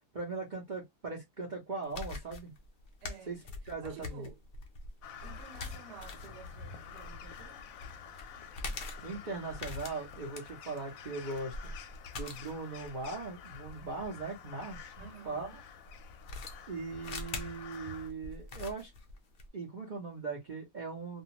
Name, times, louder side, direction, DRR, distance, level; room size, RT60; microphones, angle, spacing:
voice 1, 0.1-2.5 3.3-3.4 3.6-4.3 9.0-11.5 12.1-15.5 16.7-18.9 19.5-21.2, right 3 dB, 55° right, 0.5 m, -39 dB
sound 1, 1.8-15.0 15.9-19.5, left 3 dB, 90° left, 0.4 m, -44 dB
voice 2, 3.0-3.4 3.6-4.4 5.2-7.7 15.0-15.6, right 7 dB, 85° right, 1.3 m, -52 dB
Crow, 5.0-18.1, left 6 dB, 70° left, 0.9 m, -49 dB
2.5 x 2.3 x 2.8 m
omnidirectional pair, 1.8 m